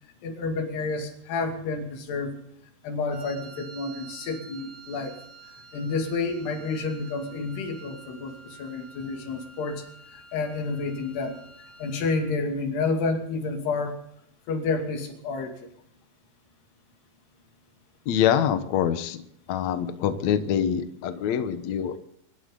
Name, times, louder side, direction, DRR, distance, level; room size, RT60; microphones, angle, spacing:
voice 1, 0.2-2.3 2.8-5.2 5.5-14.0 14.5-15.7, left 3 dB, 85° left, 4 dB, 4.5 m, -30 dB
Wind instrument woodwind instrument, 3.1-12.4, right 5 dB, 55° right, 4.9 m, -48 dB
voice 2, 18.1-19.2 19.5-22.0, left 9 dB, 65° left, 9 dB, 1.9 m, -25 dB
25.0 x 13.5 x 3.9 m, 0.69 s
omnidirectional pair, 4.6 m